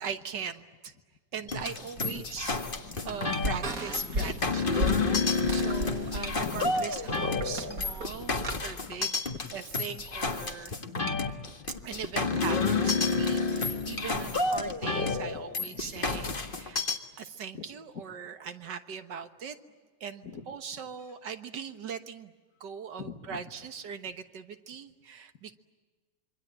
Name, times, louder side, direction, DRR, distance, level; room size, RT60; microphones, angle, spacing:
voice 1, 0.0-0.9 1.3-2.6 3.1-4.8 5.2-8.4 8.6-9.2 9.5-10.7 11.7-16.8 17.2-19.6 20.0-22.3 22.6-25.6, right 7 dB, 70° right, 9 dB, 1.9 m, -40 dB
sound 1, 1.5-17.0, left 4 dB, 30° left, 1.7 m, -30 dB
sound 2, 2.0-8.6, right 1 dB, 50° right, 2.4 m, -37 dB
voice 2, 2.6-3.0 3.6-3.7 4.0-4.4 6.4-6.9 9.3-9.4 10.8-11.9 12.1-12.5 13.9-14.8 15.1-16.3 17.5-17.7 20.2-20.5 23.0-23.4, left 6 dB, 55° left, 8 dB, 1.9 m, -44 dB
26.5 x 24.5 x 8.9 m, 1.4 s
omnidirectional pair, 2.0 m